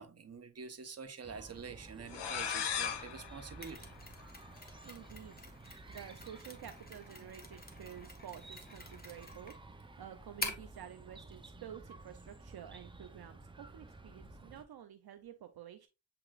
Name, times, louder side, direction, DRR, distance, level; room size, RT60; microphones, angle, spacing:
voice 1, 0.0-3.9, right 5 dB, 40° right, 0.9 m, -47 dB
Chirp tweet, 1.2-14.6, right 2 dB, 15° right, 0.5 m, -53 dB
sound 1, 2.1-4.7, left 8 dB, 85° left, 0.8 m, -39 dB
Mechanisms, 3.6-10.8, left 2 dB, 25° left, 1.3 m, -47 dB
voice 2, 4.8-5.5 5.9-15.9, right 10 dB, 65° right, 0.6 m, -51 dB
7.7 x 2.9 x 2.3 m
cardioid pair, 65°, 40 cm